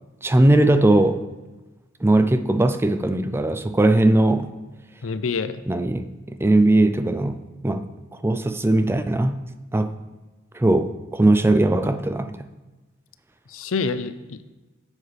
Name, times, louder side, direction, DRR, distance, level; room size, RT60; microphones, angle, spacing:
voice 1, 0.2-1.3 2.0-4.6 5.7-7.8 8.2-9.4 9.7-9.9 10.5-12.4, right 1 dB, 10° right, 10 dB, 0.4 m, -19 dB
voice 2, 5.0-5.6 13.5-14.5, left 4 dB, 75° left, 12 dB, 0.5 m, -27 dB
10.0 x 7.3 x 3.4 m, 1.2 s
head